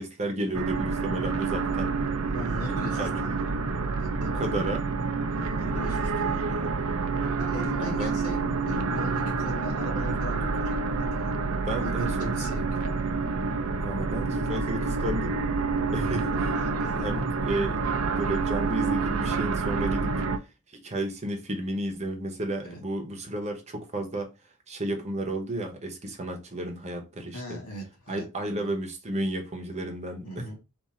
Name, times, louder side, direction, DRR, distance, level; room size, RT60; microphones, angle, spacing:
voice 1, 0.0-2.0 3.0-3.4 4.2-4.9 7.8-8.2 11.6-12.6 13.8-15.4 15.9-16.3 16.9-17.9 18.2-20.2 20.7-24.3 24.7-27.6 28.1-30.5, right 1 dB, 30° right, 0.9 m, -32 dB
sound 1, 0.5-20.4, right 4 dB, 70° right, 0.6 m, -28 dB
voice 2, 2.3-3.4 4.0-4.4 5.3-6.6 7.4-11.3 11.8-13.0 15.9-17.1 19.9-20.0 22.6-22.8 27.3-28.7 30.2-30.6, left 1 dB, 85° left, 2.0 m, -39 dB
3.6 x 2.7 x 4.2 m
head